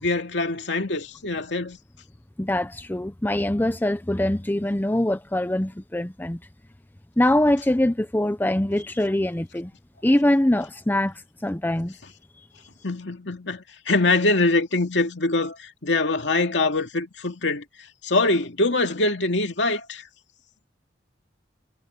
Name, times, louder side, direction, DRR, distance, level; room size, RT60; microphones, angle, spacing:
voice 1, 0.0-1.8 12.8-17.6 18.0-20.0, left 2 dB, 85° left, 2.3 m, -23 dB
voice 2, 2.4-6.4 7.2-9.7 10.0-11.1 11.4-12.0, left 1 dB, 10° left, 0.6 m, -23 dB
head